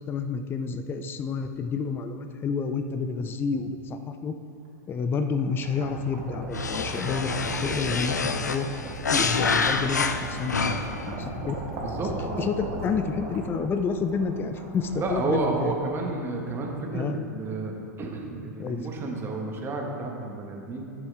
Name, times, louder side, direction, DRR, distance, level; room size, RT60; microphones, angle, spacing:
voice 1, 0.1-4.3 4.9-8.2 8.5-8.7 9.1-11.5 12.4-15.8 16.0-16.1 16.9-17.2 18.6-18.9, left 5 dB, 25° left, 8 dB, 0.5 m, -29 dB
sound 1, 5.0-16.2, right 2 dB, 50° right, 2.0 m, -38 dB
sound 2, 6.5-11.1, left 4 dB, 90° left, 0.5 m, -27 dB
voice 2, 11.8-12.5 15.0-20.9, right 3 dB, 25° right, 1 dB, 1.5 m, -31 dB
11.5 x 7.0 x 3.5 m, 2.6 s
hypercardioid pair, 100°, 9 cm